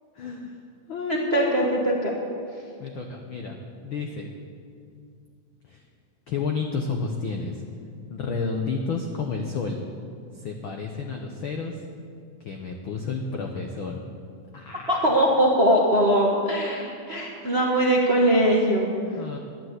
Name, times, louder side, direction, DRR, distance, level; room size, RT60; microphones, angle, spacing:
voice 1, 0.1-0.6 0.9-1.7 2.8-3.6 3.8-4.3 5.6-5.8 6.3-7.6 8.1-9.8 10.3-11.8 12.4-14.0 14.5-15.2 19.1-19.4, left 4 dB, 80° left, 2 dB, 1.1 m, -31 dB
voice 2, 1.1-2.1 14.9-18.9, right 1 dB, 45° right, -2 dB, 0.8 m, -21 dB
12.0 x 10.5 x 8.2 m, 2.3 s
omnidirectional pair, 3.6 m